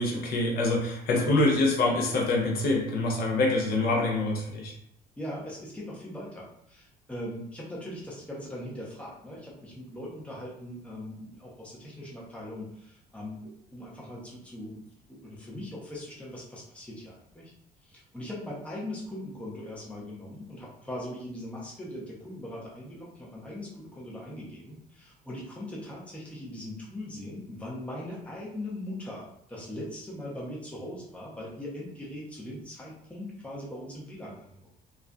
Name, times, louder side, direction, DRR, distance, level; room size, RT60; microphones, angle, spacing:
voice 1, 0.0-4.7, left 2 dB, 65° left, -1 dB, 0.6 m, -25 dB
voice 2, 5.2-17.5 17.8-34.8, left 1 dB, 5° left, -5 dB, 0.7 m, -40 dB
2.4 x 2.4 x 2.2 m, 0.72 s
cardioid pair, 110°, 17 cm